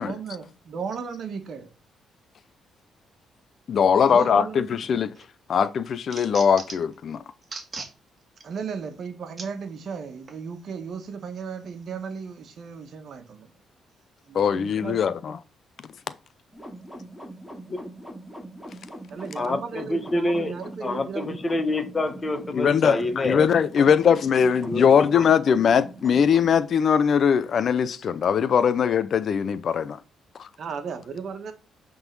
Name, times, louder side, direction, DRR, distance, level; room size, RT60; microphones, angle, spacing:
voice 1, 0.0-1.7 4.0-4.7 8.4-13.5 14.3-15.2 19.1-21.4 30.6-31.5, right 6 dB, 60° right, 1.4 m, -35 dB
voice 2, 3.7-5.1 5.5-7.2 14.3-15.4 22.5-30.0 30.4-30.5, left 7 dB, 55° left, 0.5 m, -21 dB
sound 1, 4.8-5.3 5.6-6.9 7.4-7.9 8.4-8.5 9.4-9.5 10.3-10.4, right 4 dB, 35° right, 1.6 m, -38 dB
sound 2, 16.5-26.5, right 1 dB, 5° left, 2.7 m, -42 dB
voice 3, 19.3-20.5 20.8-23.6 24.6-25.0, left 2 dB, 30° left, 1.2 m, -27 dB
8.9 x 3.9 x 5.4 m
cardioid pair, 90°, 0 cm